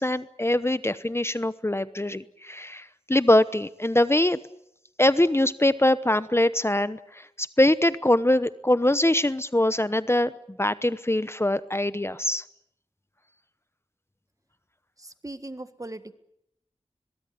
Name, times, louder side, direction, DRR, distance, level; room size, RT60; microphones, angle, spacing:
voice 1, 0.0-4.4 5.0-12.4, left 1 dB, 25° left, 14 dB, 0.9 m, -23 dB
voice 2, 15.0-16.1, right 2 dB, 30° right, 11 dB, 1.6 m, -39 dB
23.0 x 22.5 x 9.5 m, 0.75 s
wide cardioid pair, 50°, 11 cm